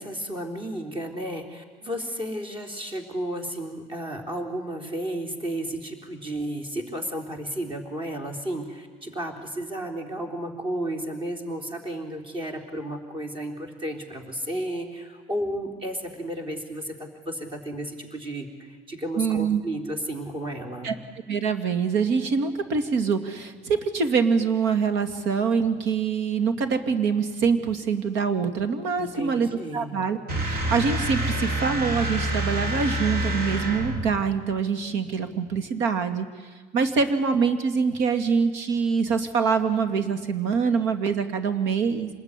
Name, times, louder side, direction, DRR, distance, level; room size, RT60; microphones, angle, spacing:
voice 1, 0.0-20.9 29.0-30.0, right 1 dB, 25° right, 4 dB, 3.8 m, -33 dB
voice 2, 19.2-19.6 20.8-20.9 21.3-36.3 36.7-42.1, right 5 dB, 75° right, 9 dB, 2.5 m, -24 dB
sound 1, 30.3-34.2, right 1 dB, 55° right, 4.0 m, -27 dB
26.5 x 20.5 x 9.9 m, 1.5 s
cardioid pair, 145°, 19 cm